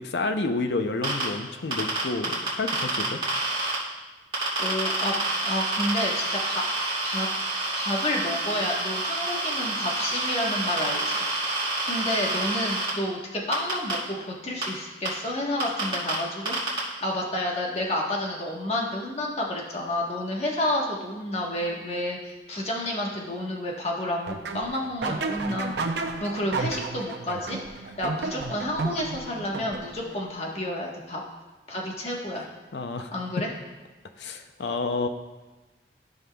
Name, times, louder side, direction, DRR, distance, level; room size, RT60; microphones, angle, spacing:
voice 1, 0.0-3.2 32.7-33.1 33.4-33.5 34.2-35.1, left 3 dB, 70° left, 7 dB, 0.6 m, -29 dB
sound 1, 1.0-1.2 1.7-3.7 4.3-12.9 13.5-13.9 14.6-14.7 15.0-15.1 15.6-16.1 16.5-16.8, right 2 dB, 30° right, 2.5 m, -28 dB
voice 2, 4.6-6.7 7.0-11.2 11.8-16.6 17.0-25.8 26.2-27.6 28.0-31.2 31.7-32.5 33.1-33.5, left 1 dB, 35° left, -2 dB, 1.2 m, -30 dB
sound 2, 24.3-30.2, right 3 dB, 70° right, 0.6 m, -32 dB
14.0 x 5.6 x 2.3 m, 1.2 s
head